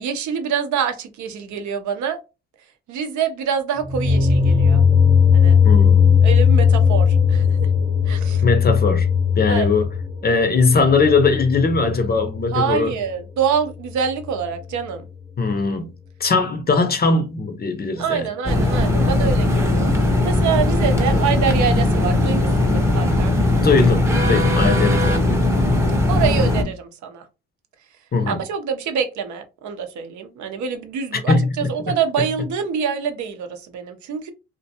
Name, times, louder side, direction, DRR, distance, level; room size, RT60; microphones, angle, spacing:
voice 1, 0.0-2.2 2.9-4.8 5.3-5.6 6.2-7.7 8.1-8.4 9.5-9.7 12.5-15.1 18.0-19.9 20.2-23.3 26.1-27.2 28.3-34.3, right 7 dB, 70° right, 0.6 m, -25 dB
sound 1, 3.8-12.7, left 6 dB, 30° right, 0.9 m, -17 dB
voice 2, 5.6-6.2 8.4-9.1 9.4-9.9 10.2-12.9 15.4-15.9 16.2-18.3 21.1-21.2 23.6-25.4 28.1-28.4 31.1-31.4 31.8-31.9, left 4 dB, 30° left, 0.5 m, -20 dB
sound 2, 18.5-26.6, left 2 dB, 10° right, 0.6 m, -18 dB
2.4 x 2.1 x 2.7 m
cardioid pair, 90°, 30 cm